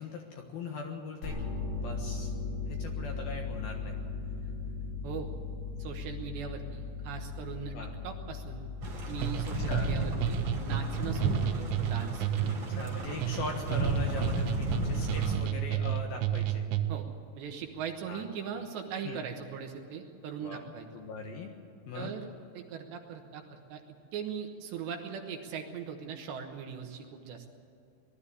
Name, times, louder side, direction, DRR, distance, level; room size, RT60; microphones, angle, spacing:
voice 1, 0.0-1.4 1.8-2.3 2.7-4.0 7.7-7.9 9.7-9.9 12.7-16.7 18.1-18.2 19.0-19.2 20.4-21.5 21.9-22.1, left 3 dB, 65° left, 2 dB, 2.7 m, -40 dB
sound 1, 1.2-12.2, left 4 dB, 80° left, 7.4 m, -38 dB
voice 2, 5.8-7.7 8.0-8.6 9.1-12.6 16.9-17.1 17.4-20.9 21.9-22.3 22.5-23.8 24.1-27.5, right 7 dB, 70° right, 4 dB, 3.1 m, -40 dB
sound 2, 8.8-15.4, right 2 dB, 40° right, 4.8 m, -33 dB
sound 3, 9.2-17.1, right 11 dB, 90° right, 3.4 m, -32 dB
20.0 x 13.0 x 10.0 m, 2.7 s
omnidirectional pair, 5.8 m